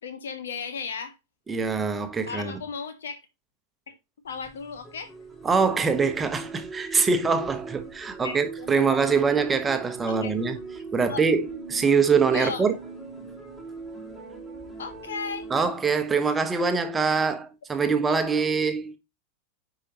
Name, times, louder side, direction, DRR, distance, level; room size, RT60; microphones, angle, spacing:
voice 1, 0.0-1.1 2.3-3.2 3.9-4.0 4.2-5.1 8.2-8.8 10.1-10.3 10.9-11.2 12.3-12.7 14.8-15.5, left 5 dB, 65° left, 1.4 m, -35 dB
voice 2, 1.5-2.6 5.4-10.6 10.9-12.7 15.5-19.0, right 5 dB, 15° right, 1.1 m, -24 dB
sound 1, 4.3-15.7, right 4 dB, 15° left, 3.0 m, -40 dB
9.7 x 4.9 x 3.0 m
figure-of-eight pair, 90°, 0 cm